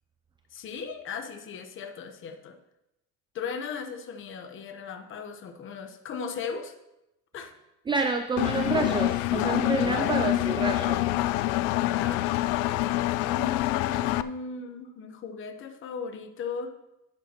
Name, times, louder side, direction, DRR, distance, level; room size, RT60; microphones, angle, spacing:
voice 1, 0.5-2.6 3.3-6.7 7.3-7.5 9.8-10.4 11.7-12.2 13.1-16.7, left 6 dB, 40° left, 5 dB, 1.0 m, -37 dB
voice 2, 7.9-11.1, right 4 dB, 15° right, 7 dB, 0.4 m, -28 dB
Engine, 8.4-14.2, left 16 dB, 90° left, 0.5 m, -26 dB
12.0 x 9.0 x 2.9 m, 0.90 s
cardioid pair, 150°, 32 cm